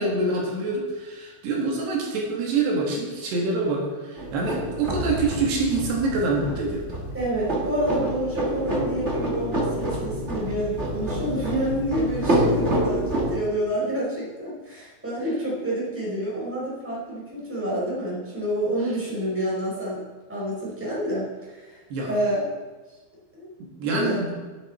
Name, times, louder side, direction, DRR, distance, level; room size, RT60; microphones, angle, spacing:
voice 1, 0.0-6.9 21.9-22.1 23.8-24.3, right 3 dB, 75° right, -2 dB, 3.9 m, -26 dB
sound 1, 4.2-13.4, right 1 dB, 45° right, 0.8 m, -27 dB
voice 2, 7.1-20.0 20.3-22.5 23.3-23.5 23.8-24.2, equal, 5° right, -6 dB, 4.2 m, -28 dB
13.0 x 11.5 x 4.3 m, 1.3 s
omnidirectional pair, 4.9 m